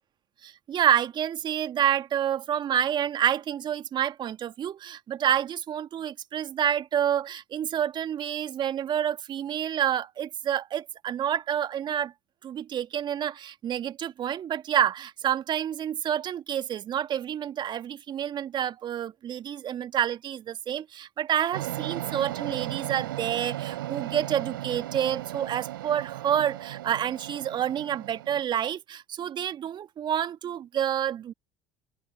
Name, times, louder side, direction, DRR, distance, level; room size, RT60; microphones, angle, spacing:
voice 1, 0.4-12.1 12.4-31.3, right 10 dB, 40° right, 1.9 m, -28 dB
sound 1, 21.5-28.4, right 15 dB, 75° right, 3.3 m, -36 dB
open air
figure-of-eight pair, 65°, 11 cm